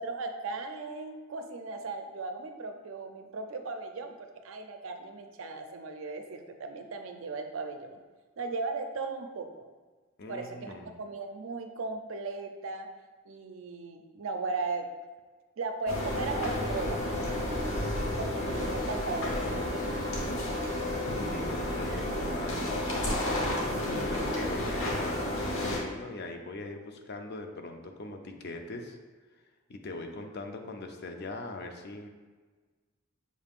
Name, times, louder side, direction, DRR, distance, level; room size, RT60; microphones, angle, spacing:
voice 1, 0.0-8.0 8.4-9.6 10.3-12.9 13.3-14.9 15.6-17.0 18.2-20.0, right 3 dB, 75° right, 6 dB, 0.5 m, -37 dB
voice 2, 10.2-10.9 21.3-23.3 23.9-29.0 29.7-32.1, left 2 dB, 55° left, 4 dB, 0.5 m, -41 dB
sound 1, 15.9-25.8, left 1 dB, 80° left, 1.1 m, -31 dB
6.2 x 3.5 x 2.4 m, 1.4 s
head